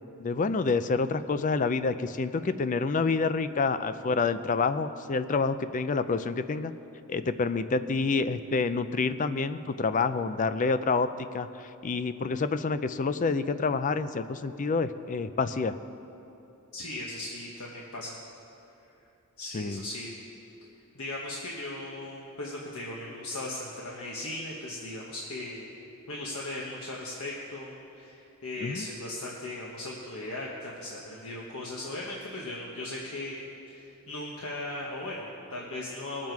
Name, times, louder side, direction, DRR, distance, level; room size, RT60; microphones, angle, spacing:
voice 1, 0.2-6.7 7.1-15.8 19.5-19.8 28.6-28.9, left 4 dB, 35° left, 12 dB, 0.4 m, -28 dB
voice 2, 16.7-18.2 19.4-20.1 20.9-25.7 26.1-36.3, left 2 dB, 75° left, -4 dB, 1.3 m, -38 dB
20.0 x 7.5 x 4.6 m, 2.8 s
head